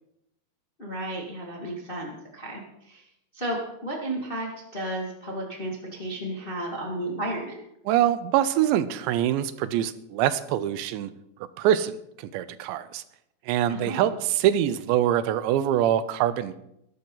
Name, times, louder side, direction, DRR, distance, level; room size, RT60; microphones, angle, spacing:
voice 1, 0.8-3.0 3.3-7.6 13.7-14.1, right 1 dB, 25° left, -2 dB, 1.2 m, -33 dB
voice 2, 7.9-11.1 11.6-13.0 13.5-16.6, right 11 dB, 85° right, 14 dB, 3.0 m, -24 dB
20.0 x 11.0 x 4.0 m, 0.80 s
omnidirectional pair, 5.0 m